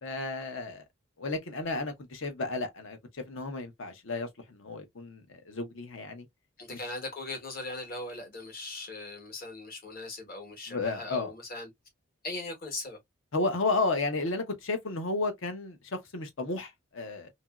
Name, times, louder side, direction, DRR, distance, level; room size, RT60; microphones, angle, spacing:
voice 1, 0.0-0.9 1.2-6.3 6.7-6.8 10.7-11.3 13.3-17.3, left 3 dB, 65° left, 0.7 m, -33 dB
voice 2, 6.6-11.7 12.2-13.0, left 2 dB, 45° left, 1.1 m, -39 dB
2.9 x 2.6 x 2.2 m
head